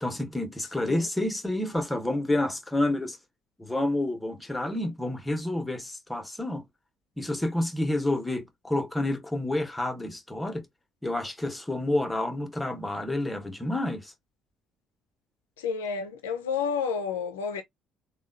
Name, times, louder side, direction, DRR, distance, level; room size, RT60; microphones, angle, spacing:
voice 1, 0.0-3.2 3.6-6.6 7.2-10.7 11.0-14.1, left 1 dB, 10° left, 0.9 m, -29 dB
voice 2, 15.6-17.6, left 6 dB, 85° left, 0.4 m, -30 dB
3.4 x 2.2 x 2.4 m
hypercardioid pair, 50°, 0 cm